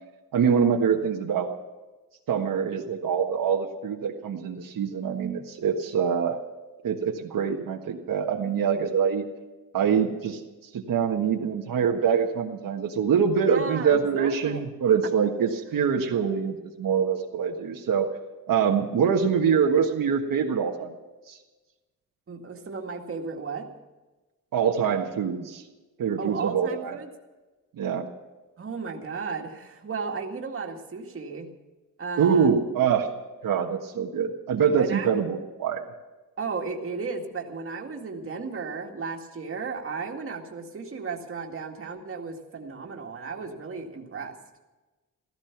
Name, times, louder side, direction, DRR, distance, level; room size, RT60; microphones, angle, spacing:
voice 1, 0.3-1.5 2.3-6.4 6.8-9.2 9.7-10.4 10.7-18.1 18.5-20.9 21.3-21.4 24.5-25.6 26.0-27.0 27.8-28.1 32.2-33.1 33.4-35.8, right 7 dB, 75° right, 1 dB, 1.5 m, -24 dB
voice 2, 13.5-14.6 22.3-23.7 26.2-27.1 28.6-31.5 32.0-32.5 34.8-35.1 36.4-44.4, right 4 dB, 40° right, 1 dB, 2.1 m, -34 dB
15.5 x 15.0 x 6.0 m, 1.2 s
wide cardioid pair, 135°, 34 cm